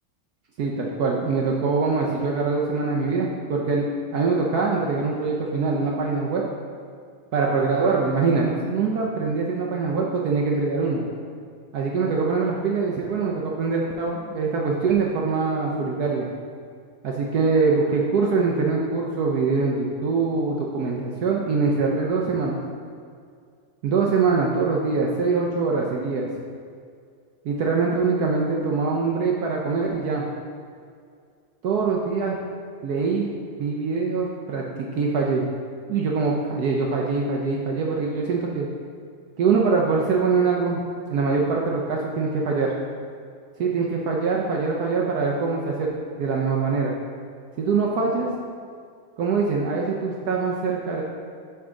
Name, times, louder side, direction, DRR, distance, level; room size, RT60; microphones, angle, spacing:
voice 1, 0.6-6.4 7.3-11.0 11.7-16.3 17.0-22.6 23.8-26.3 27.4-30.3 31.6-32.3 32.8-33.3 33.6-35.5 35.9-38.7 39.4-40.8 41.1-42.7 43.6-45.9 46.2-46.9 47.6-48.3 49.2-51.0, right 4 dB, 70° right, -2 dB, 0.9 m, -23 dB
6.9 x 4.7 x 3.7 m, 2.2 s
omnidirectional pair, 2.2 m